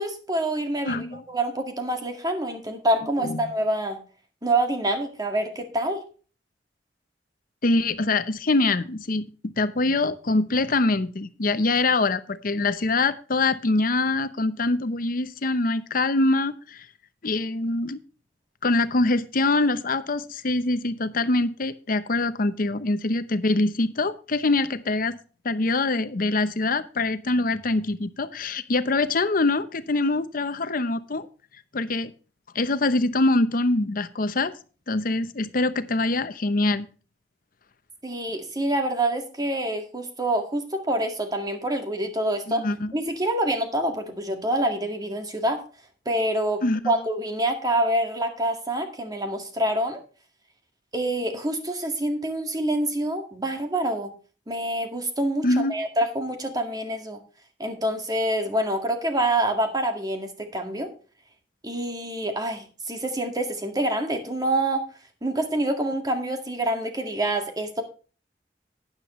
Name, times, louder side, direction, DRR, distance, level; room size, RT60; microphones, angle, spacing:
voice 1, 0.0-4.0 4.4-6.0 38.0-42.7 42.9-45.6 46.1-50.0 50.9-54.1 54.5-57.2 57.6-60.9 61.6-64.8 65.2-67.8, right 1 dB, 25° right, 5 dB, 1.9 m, -26 dB
voice 2, 0.9-1.2 3.2-3.4 7.6-16.8 17.2-18.0 18.6-25.2 25.4-31.3 31.7-32.1 32.5-34.5 34.9-36.9 42.5-42.9 46.6-46.8 55.4-55.7, left 2 dB, 55° left, 13 dB, 0.8 m, -24 dB
12.0 x 9.7 x 3.1 m, 0.36 s
head